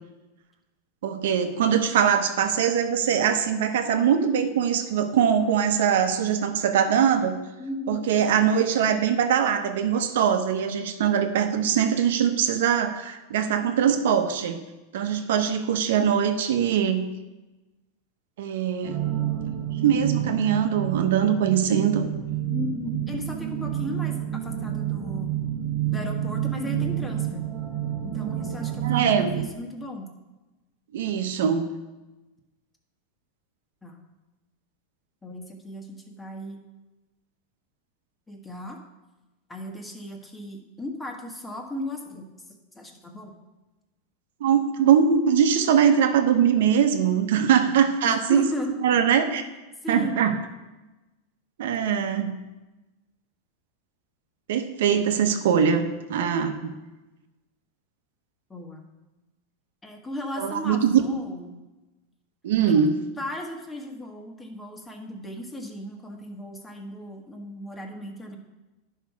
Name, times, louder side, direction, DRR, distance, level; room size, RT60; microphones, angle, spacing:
voice 1, 1.0-7.4 7.9-14.6 14.9-17.0 18.4-19.1 19.8-22.1 28.8-29.4 30.9-31.7 44.4-48.4 48.8-49.4 49.9-50.4 51.6-52.4 54.5-56.7 60.4-61.0 62.4-63.0, right 8 dB, 80° right, 7 dB, 1.0 m, -22 dB
voice 2, 7.6-8.1 22.5-25.3 25.9-27.5 28.0-30.1 33.8-34.0 35.2-36.6 38.3-38.8 39.5-43.4 47.5-47.8 48.0-48.7 49.8-50.2 58.5-58.8 59.8-61.6 62.7-62.9 63.2-68.4, left 1 dB, 10° left, 2 dB, 1.4 m, -36 dB
sound 1, 18.8-29.4, right 11 dB, 25° right, 1.2 m, -29 dB
10.5 x 5.7 x 4.7 m, 1.1 s
supercardioid pair, 130°, 0 cm